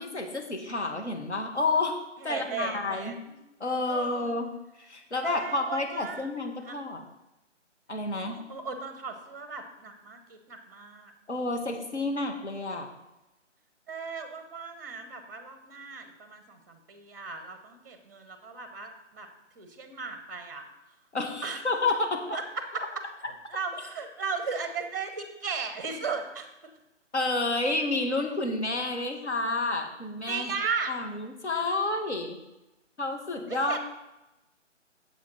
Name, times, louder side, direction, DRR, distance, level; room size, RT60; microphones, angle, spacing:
voice 1, 0.0-2.0 2.2-3.1 3.6-7.0 7.9-8.4 11.3-12.9 21.1-22.4 27.1-30.5 30.9-32.4 33.0-33.8, left 2 dB, 65° left, 3 dB, 2.1 m, -30 dB
voice 2, 2.2-3.3 3.9-4.3 5.2-6.2 6.6-6.8 8.2-11.1 13.9-19.3 19.5-20.6 21.4-21.6 22.3-22.4 22.7-22.8 23.5-26.5 30.3-30.9 33.5-33.8, right 5 dB, 15° right, 8 dB, 0.7 m, -36 dB
9.5 x 7.5 x 4.3 m, 0.95 s
figure-of-eight pair, 145°, 37 cm